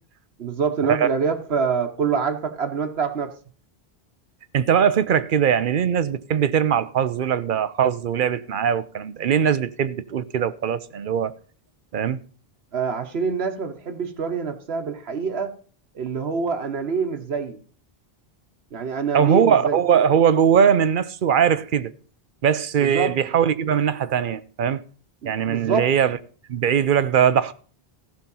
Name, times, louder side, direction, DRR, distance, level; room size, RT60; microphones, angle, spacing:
voice 1, 0.4-3.3 12.7-15.5 15.9-17.6 18.7-20.1 22.8-23.1 25.2-25.9, right 5 dB, 90° right, 1.3 m, -26 dB
voice 2, 4.5-11.3 11.9-12.2 19.1-21.9 22.4-24.8 25.2-26.2 26.5-27.5, right 8 dB, 60° right, 0.8 m, -20 dB
14.5 x 5.8 x 5.4 m
omnidirectional pair, 1.0 m